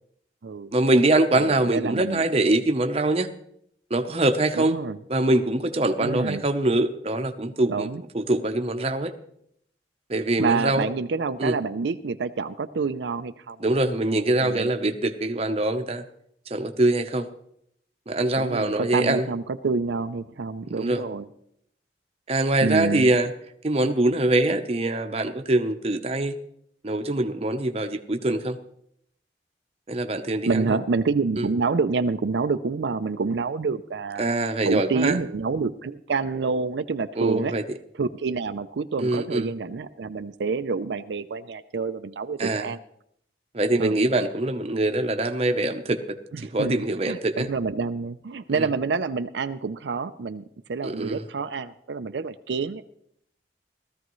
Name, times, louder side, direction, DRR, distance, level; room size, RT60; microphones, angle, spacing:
voice 1, 0.7-3.3 3.9-4.8 5.1-7.9 8.1-9.1 10.1-10.9 11.4-11.5 13.6-16.0 16.5-17.3 18.1-19.3 20.7-21.0 22.3-23.3 23.6-26.3 26.8-28.6 29.9-30.8 31.4-31.5 34.2-35.2 37.2-37.6 39.0-39.5 42.4-42.7 43.5-46.2 46.4-47.5 48.5-48.7 50.8-51.2, right 2 dB, 35° right, 7 dB, 0.8 m, -23 dB
voice 2, 1.3-2.2 4.6-5.0 6.0-6.4 7.7-8.0 10.4-13.6 14.4-14.7 18.4-21.3 22.6-23.1 30.5-34.3 34.6-37.5 38.0-42.8 43.8-44.0 46.6-53.0, right 4 dB, 80° right, 10 dB, 0.5 m, -27 dB
16.5 x 14.0 x 3.1 m, 0.72 s
head